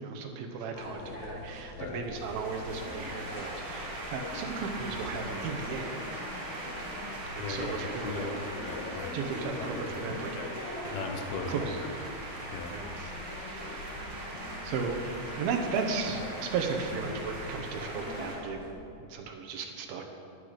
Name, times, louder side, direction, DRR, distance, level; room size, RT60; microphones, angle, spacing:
voice 1, 0.0-5.9 6.5-6.7 7.2-8.4 9.1-10.5 10.8-11.0 11.5-11.8 12.7-13.1 13.5-13.9 14.6-15.0 15.2-18.6 19.0-20.0, right 5 dB, 75° right, 3 dB, 2.7 m, -35 dB
sound 1, 0.7-18.7, left 2 dB, 60° left, 2.4 m, -43 dB
sound 2, 2.1-18.4, right 1 dB, 35° right, 2.7 m, -41 dB
voice 2, 7.4-9.2 9.7-9.8 10.3-10.4 10.9-11.6 12.5-12.8, left 5 dB, 75° left, 4 dB, 2.9 m, -38 dB
13.0 x 10.5 x 5.1 m, 2.6 s
omnidirectional pair, 4.6 m